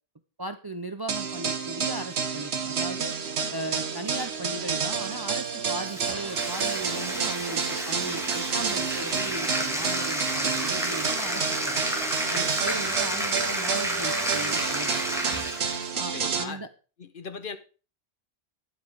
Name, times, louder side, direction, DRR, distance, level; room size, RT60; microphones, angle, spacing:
voice 1, 0.4-3.2 3.5-11.8 12.3-15.2 16.0-16.7, right 2 dB, 30° right, 10 dB, 0.4 m, -37 dB
sound 1, 1.1-16.4, right 6 dB, 75° right, 1.3 m, -30 dB
Bathtub (filling or washing), 5.9-15.9, equal, 5° right, 1.7 m, -31 dB
voice 2, 15.9-16.6 17.0-17.6, left 5 dB, 55° left, 11 dB, 1.1 m, -39 dB
10.5 x 7.5 x 4.8 m, 0.36 s
omnidirectional pair, 1.1 m